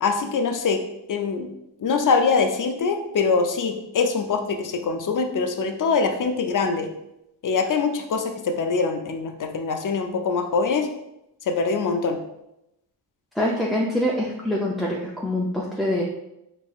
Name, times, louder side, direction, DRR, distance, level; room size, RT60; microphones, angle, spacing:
voice 1, 0.0-0.8 1.1-1.5 1.8-6.9 7.4-10.9 11.5-12.2, left 4 dB, 50° left, 5 dB, 0.6 m, -23 dB
voice 2, 13.4-16.0, left 1 dB, ahead, -4 dB, 0.4 m, -24 dB
4.4 x 3.0 x 2.3 m, 0.86 s
cardioid pair, 75°, 42 cm